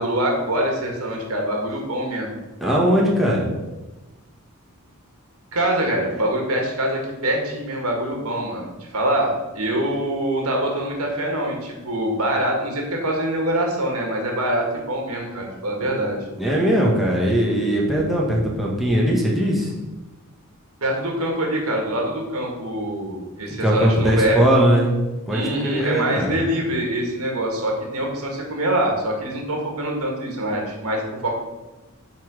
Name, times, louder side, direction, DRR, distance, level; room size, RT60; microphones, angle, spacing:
voice 1, 0.0-2.4 5.5-16.2 20.8-24.4 25.3-31.3, right 1 dB, 85° right, 1 dB, 1.7 m, -24 dB
voice 2, 2.6-3.5 15.8-15.9 16.4-19.7 23.6-25.0 25.3-25.4 25.7-26.3, equal, ahead, -4 dB, 1.7 m, -19 dB
8.2 x 4.2 x 6.2 m, 1.1 s
head